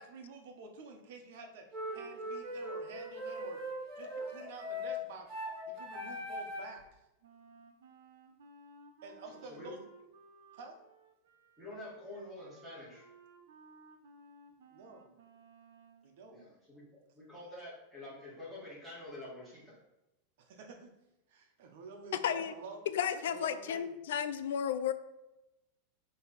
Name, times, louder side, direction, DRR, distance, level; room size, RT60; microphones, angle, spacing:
voice 1, 0.0-1.7 1.9-3.6 4.0-5.3 5.6-7.0 9.0-9.8 10.5-10.8 14.7-15.1 16.0-16.4 20.4-20.9 21.3-22.9 23.3-24.0, right 3 dB, 55° right, 4 dB, 1.2 m, -49 dB
sound 1, 1.7-6.8, equal, 20° right, 1.8 m, -40 dB
Wind instrument woodwind instrument, 7.2-16.1, right 3 dB, 85° right, 1.0 m, -59 dB
voice 2, 9.3-9.7 11.6-13.1 16.3-19.8, left 1 dB, ahead, -8 dB, 2.1 m, -48 dB
voice 3, 22.2-22.5 22.9-24.9, left 9 dB, 75° left, 12 dB, 0.5 m, -33 dB
9.0 x 3.4 x 4.2 m, 0.93 s
supercardioid pair, 175°, 0 cm